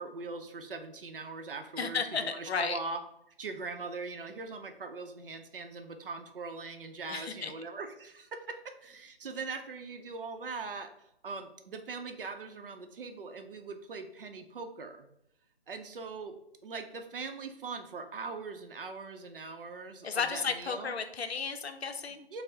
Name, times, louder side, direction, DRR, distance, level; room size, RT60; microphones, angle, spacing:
voice 1, 0.0-3.0 3.4-8.5 8.8-10.9 11.2-15.1 15.7-16.3 16.6-20.9 22.3-22.4, right 4 dB, 60° right, 6 dB, 0.5 m, -41 dB
voice 2, 1.8-2.8 7.1-7.5 20.0-22.3, left 5 dB, 80° left, 8 dB, 0.5 m, -33 dB
4.4 x 2.0 x 2.7 m, 0.75 s
figure-of-eight pair, 150°, 31 cm